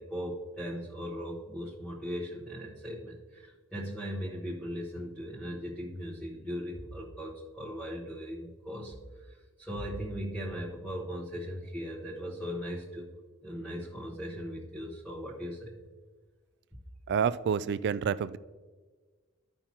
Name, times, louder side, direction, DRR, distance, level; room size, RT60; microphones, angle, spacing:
voice 1, 0.0-9.0 9.6-13.1 13.4-15.7, equal, ahead, -9 dB, 1.1 m, -38 dB
voice 2, 17.1-18.4, right 7 dB, 55° right, 17 dB, 0.3 m, -28 dB
13.5 x 5.5 x 2.9 m, 1.4 s
head